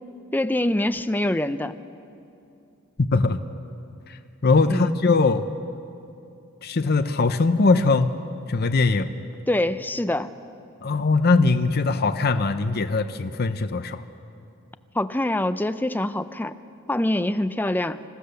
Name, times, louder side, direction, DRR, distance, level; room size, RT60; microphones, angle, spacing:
voice 1, 0.3-1.7 4.7-5.0 9.5-10.3 14.9-16.5 16.9-18.0, left 1 dB, 10° left, 11 dB, 0.5 m, -24 dB
voice 2, 3.0-3.4 4.1-4.2 4.4-5.5 6.6-8.2 8.5-9.1 10.8-14.0, left 3 dB, 50° left, 9 dB, 0.7 m, -21 dB
26.5 x 15.5 x 6.8 m, 2.6 s
head